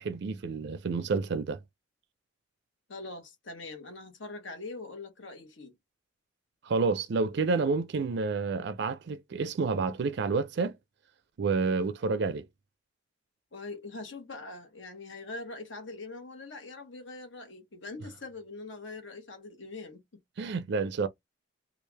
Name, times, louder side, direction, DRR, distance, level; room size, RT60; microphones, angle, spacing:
voice 1, 0.0-1.6 6.6-10.7 11.4-12.5 20.4-21.1, right 4 dB, 60° right, 0.4 m, -29 dB
voice 2, 2.9-5.7 13.5-20.2, left 3 dB, 70° left, 1.2 m, -43 dB
3.2 x 2.4 x 3.3 m
head